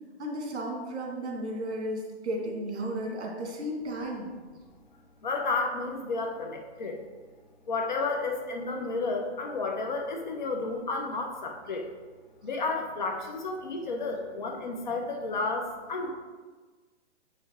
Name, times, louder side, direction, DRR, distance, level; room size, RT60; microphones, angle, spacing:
voice 1, 0.2-4.3, right 1 dB, 70° right, 0 dB, 2.1 m, -34 dB
voice 2, 5.2-7.0 7.7-11.9 12.4-16.1, left 3 dB, 40° left, 2 dB, 0.9 m, -32 dB
7.5 x 5.6 x 3.6 m, 1.4 s
hypercardioid pair, 175°, 35 cm